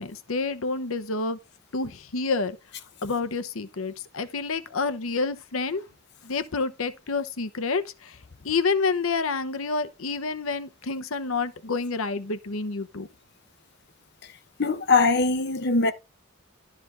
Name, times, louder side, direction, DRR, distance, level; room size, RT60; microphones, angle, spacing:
voice 1, 0.0-1.4 1.7-2.6 3.0-5.8 6.2-8.2 8.4-13.1, left 4 dB, 85° left, 0.8 m, -28 dB
voice 2, 14.6-15.9, left 3 dB, 55° left, 0.9 m, -21 dB
11.5 x 5.0 x 3.7 m
head